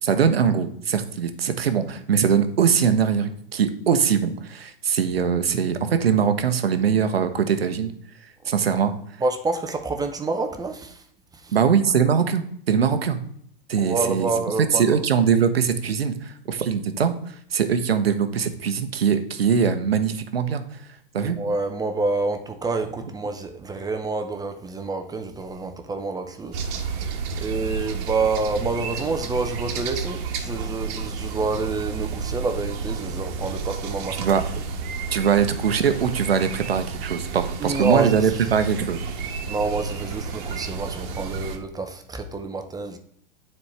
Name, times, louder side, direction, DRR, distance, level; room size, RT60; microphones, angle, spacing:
voice 1, 0.0-7.9 8.5-8.9 11.5-13.2 13.7-14.3 14.7-17.1 17.5-20.6 21.1-21.4 34.2-34.4 35.1-39.0, right 7 dB, 85° right, 9 dB, 0.8 m, -22 dB
voice 2, 9.2-11.0 11.3-11.6 13.8-15.0 21.1-34.3 37.6-38.3 39.5-43.0, right 3 dB, 15° right, 6 dB, 0.6 m, -28 dB
sound 1, 26.5-41.6, right 5 dB, 55° right, 1.3 m, -31 dB
9.5 x 4.3 x 3.3 m, 0.66 s
hypercardioid pair, 100°, 29 cm